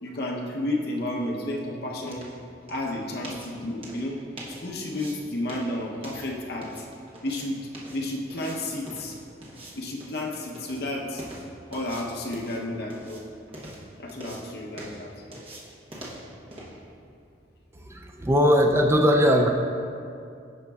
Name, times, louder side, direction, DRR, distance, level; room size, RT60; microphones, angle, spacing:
voice 1, 0.0-2.2 2.7-4.2 4.5-6.9 7.2-9.2 9.8-11.2 11.7-13.2 14.0-15.1, left 1 dB, 60° left, -1 dB, 0.8 m, -32 dB
sound 1, 0.9-18.7, right 1 dB, 30° right, 1.0 m, -45 dB
voice 2, 17.7-19.5, equal, 15° right, 3 dB, 0.3 m, -20 dB
11.5 x 5.1 x 2.3 m, 2.5 s
head